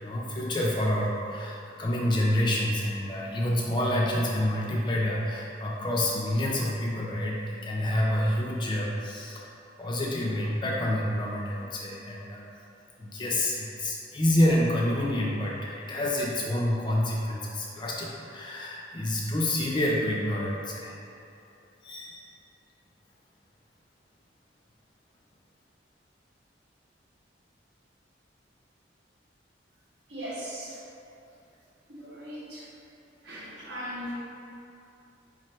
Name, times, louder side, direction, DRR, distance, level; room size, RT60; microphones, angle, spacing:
voice 1, 0.0-9.5 9.8-12.4 13.0-21.0 21.8-22.2, left 1 dB, 25° left, -3 dB, 0.3 m, -28 dB
voice 2, 30.1-30.8 31.9-32.7 33.2-34.1, equal, 60° right, -7 dB, 0.9 m, -38 dB
4.3 x 2.5 x 3.1 m, 2.7 s
head